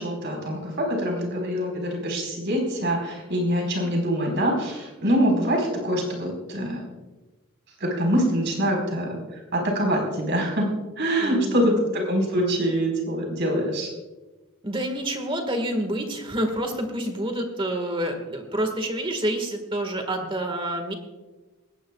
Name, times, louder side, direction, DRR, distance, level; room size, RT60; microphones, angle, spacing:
voice 1, 0.0-6.8 7.8-10.7 11.0-13.9, equal, 50° right, 0 dB, 4.6 m, -24 dB
voice 2, 11.2-11.7 14.6-20.9, right 1 dB, 25° right, 5 dB, 1.7 m, -28 dB
20.0 x 17.5 x 2.4 m, 1.2 s
head